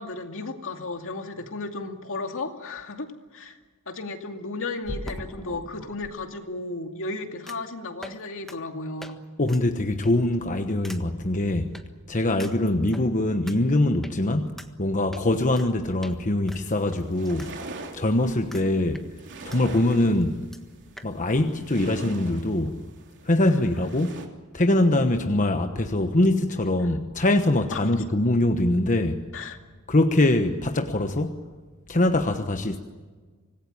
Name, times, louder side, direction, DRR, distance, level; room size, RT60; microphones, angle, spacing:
voice 1, 0.0-3.6 3.9-9.2 27.7-27.8 29.3-29.6, left 3 dB, 65° left, 2.5 m, -34 dB
sound 1, 4.8-6.1 7.5-7.7 8.0-8.2 8.5-8.6 9.0-9.1 9.5-9.6 10.0-10.3 10.8-11.0 11.7-11.8 12.4-13.0 13.5-13.6 14.0-14.1 14.6-14.7 15.1-15.7 16.0-16.2 16.5-17.5 17.8-17.9 18.5-18.7 18.9-19.6 19.9-20.0 20.2-20.3 20.5-20.6 21.0-21.1, equal, ahead, 1.5 m, -41 dB
voice 2, 9.4-11.8 12.1-17.5 17.9-19.1 19.4-20.5 21.0-22.8 23.2-24.2 24.5-29.3 29.9-31.4 31.9-32.8, left 1 dB, 35° left, 1.2 m, -23 dB
sound 2, 16.5-24.3, right 3 dB, 55° right, 3.2 m, -43 dB
25.5 x 20.0 x 8.8 m
head